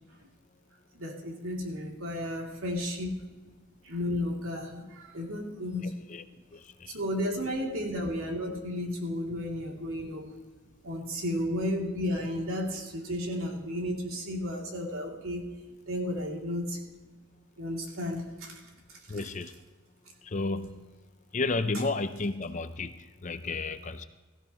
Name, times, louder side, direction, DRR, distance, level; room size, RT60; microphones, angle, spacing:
voice 1, 0.9-3.2 3.8-6.0 6.9-10.3 10.8-15.5 15.9-16.8 17.6-18.6 18.9-19.2, left 1 dB, 80° right, 0 dB, 2.8 m, -33 dB
voice 2, 6.5-7.0 19.1-19.5 20.2-20.7 21.3-24.1, left 3 dB, 35° left, 10 dB, 0.6 m, -32 dB
17.0 x 15.0 x 3.0 m, 1.2 s
head